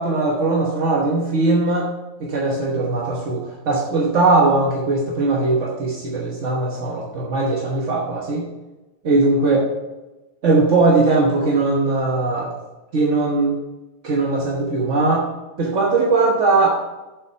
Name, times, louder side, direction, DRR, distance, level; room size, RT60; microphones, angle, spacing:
voice 1, 0.0-1.8 2.2-8.5 9.0-9.6 10.4-12.5 12.9-13.6 14.0-15.3 15.6-16.8, right 3 dB, 75° right, -3 dB, 1.6 m, -19 dB
7.6 x 5.9 x 5.7 m, 1.1 s
omnidirectional pair, 1.3 m